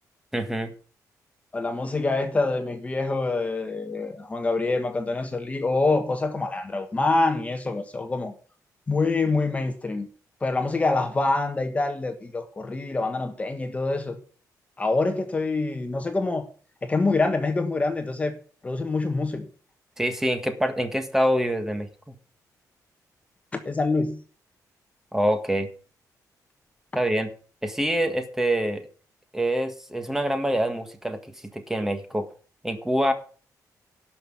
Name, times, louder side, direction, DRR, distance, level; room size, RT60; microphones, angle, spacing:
voice 1, 0.3-0.7 20.0-22.1 25.1-25.7 26.9-27.3 27.6-28.9 29.3-32.3 32.6-33.1, equal, 5° right, 1.6 m, -25 dB
voice 2, 1.5-8.3 8.9-10.1 10.4-14.2 14.8-16.5 16.8-18.4 18.6-19.5 23.5-24.2, left 3 dB, 20° left, 1.3 m, -25 dB
12.0 x 6.1 x 8.7 m
wide cardioid pair, 145°, 7 cm